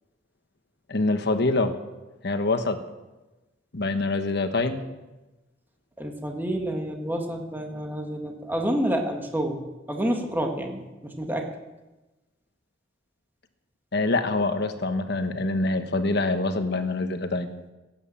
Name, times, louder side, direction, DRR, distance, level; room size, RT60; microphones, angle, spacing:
voice 1, 0.9-1.7 2.2-2.8 3.7-4.8 13.9-17.5, left 2 dB, 65° left, 8 dB, 1.2 m, -25 dB
voice 2, 6.0-9.6 9.9-11.5, right 1 dB, 10° right, 3 dB, 1.7 m, -28 dB
17.0 x 9.2 x 7.3 m, 1.1 s
head